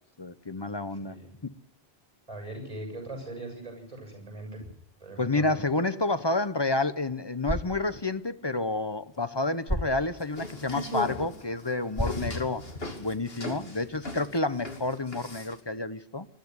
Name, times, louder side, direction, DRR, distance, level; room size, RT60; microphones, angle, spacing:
voice 1, 0.2-1.2 1.4-1.5 5.2-12.6 13.0-16.3, left 2 dB, 30° left, 0.8 m, -29 dB
voice 2, 0.9-1.4 2.3-4.7 5.0-5.5, right 1 dB, 30° right, 7.4 m, -41 dB
sound 1, 7.3-13.3, equal, ahead, 1.9 m, -38 dB
sound 2, 10.2-15.6, left 1 dB, 70° left, 2.8 m, -37 dB
20.5 x 13.0 x 9.5 m
omnidirectional pair, 1.0 m